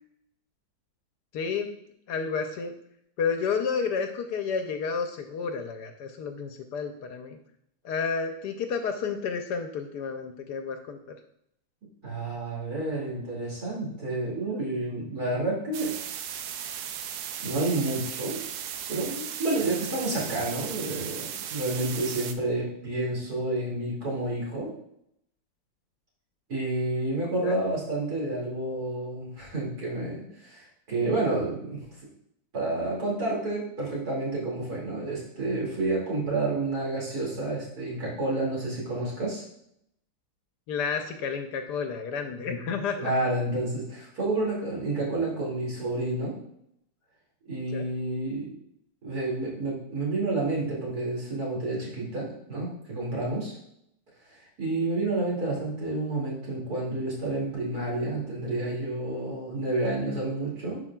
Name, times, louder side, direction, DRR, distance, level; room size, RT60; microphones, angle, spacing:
voice 1, 1.3-1.8 2.1-2.7 3.2-7.4 7.8-11.2 27.4-27.6 40.7-43.1 47.7-47.9, left 5 dB, 75° left, 6 dB, 1.1 m, -31 dB
voice 2, 12.0-15.9 17.4-18.4 18.9-24.7 26.5-31.8 32.5-39.4 42.3-42.7 43.0-46.3 47.5-48.5 49.0-53.5 54.3-60.8, right 2 dB, 55° right, -4 dB, 2.8 m, -30 dB
sound 1, 15.7-22.3, right 9 dB, 90° right, 1.3 m, -36 dB
11.0 x 4.7 x 2.3 m, 0.75 s
omnidirectional pair, 2.0 m